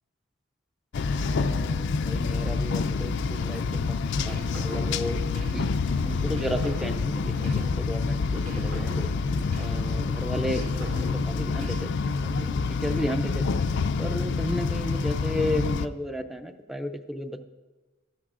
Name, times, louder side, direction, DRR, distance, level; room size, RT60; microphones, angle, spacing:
sound 1, 0.9-15.9, left 4 dB, 60° left, 0.4 m, -27 dB
voice 1, 1.3-5.2 5.5-5.7 6.0-9.1 9.6-13.5 14.0-17.5, equal, ahead, 7 dB, 0.4 m, -33 dB
sound 2, 4.1-5.8 6.2-8.0 8.3-10.0 10.4-12.1, equal, 80° right, 1.7 m, -39 dB
15.0 x 11.5 x 2.5 m, 1.2 s
head